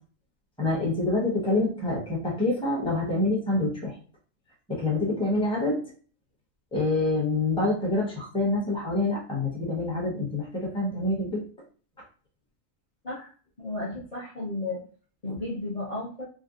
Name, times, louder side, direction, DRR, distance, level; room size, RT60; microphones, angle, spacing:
voice 1, 0.6-3.9 4.7-5.8 6.7-11.4 15.3-15.4, left 2 dB, 5° left, -3 dB, 0.9 m, -26 dB
voice 2, 13.6-14.8 15.2-16.2, left 2 dB, 30° left, -5 dB, 0.9 m, -33 dB
3.7 x 2.3 x 2.5 m, 0.41 s
omnidirectional pair, 1.4 m